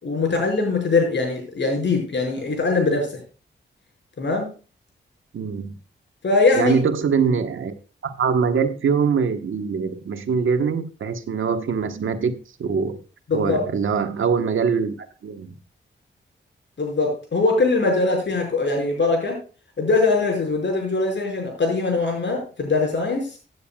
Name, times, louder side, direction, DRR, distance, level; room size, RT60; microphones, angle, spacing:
voice 1, 0.0-3.2 4.2-4.5 6.2-6.8 13.3-13.6 16.8-19.4 19.8-23.3, left 3 dB, 65° left, 1 dB, 5.9 m, -22 dB
voice 2, 5.3-5.7 6.5-7.8 8.0-13.0 13.3-15.5, right 6 dB, 80° right, 8 dB, 1.3 m, -23 dB
16.0 x 9.5 x 2.4 m, 0.34 s
cardioid pair, 80°, 20 cm